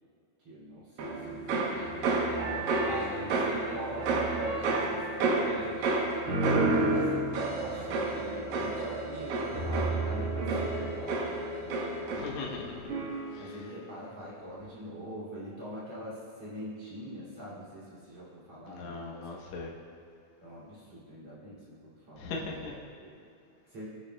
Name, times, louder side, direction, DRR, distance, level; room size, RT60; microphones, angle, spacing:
voice 1, 0.4-1.9 2.8-12.3 13.4-19.3 20.4-23.2 23.6-23.9, equal, 40° right, -8 dB, 3.2 m, -44 dB
sound 1, 1.0-12.6 12.9-13.4, right 2 dB, 70° right, 2.4 m, -30 dB
voice 2, 1.7-2.2 7.7-7.9 12.2-12.8 18.7-19.7 22.2-22.7, left 3 dB, 85° left, -2 dB, 1.6 m, -40 dB
Wind instrument woodwind instrument, 9.6-14.1, left 8 dB, 70° left, 2.1 m, -45 dB
18.5 x 10.5 x 2.3 m, 2.5 s
omnidirectional pair, 4.9 m